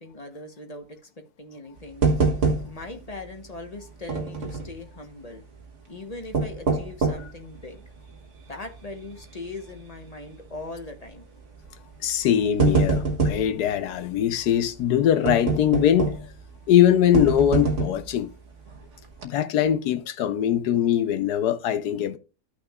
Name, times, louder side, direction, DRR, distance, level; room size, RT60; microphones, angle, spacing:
voice 1, 0.0-2.1 2.6-5.4 5.9-7.8 8.5-11.3, left 2 dB, 30° left, 1.0 m, -40 dB
sound 1, 2.0-3.0 3.3-3.4 4.1-4.8 6.1-7.4 7.9-8.0 8.7-8.9 9.2-9.3 10.5-10.8 11.7-11.8 12.2-13.5 15.3-16.4 17.1-18.1 18.7-18.8 19.1-19.2, right 4 dB, 50° right, 1.4 m, -24 dB
voice 2, 12.0-16.2 16.7-18.3 19.2-22.2, left 10 dB, 90° left, 1.3 m, -22 dB
13.0 x 6.1 x 2.4 m
omnidirectional pair, 1.7 m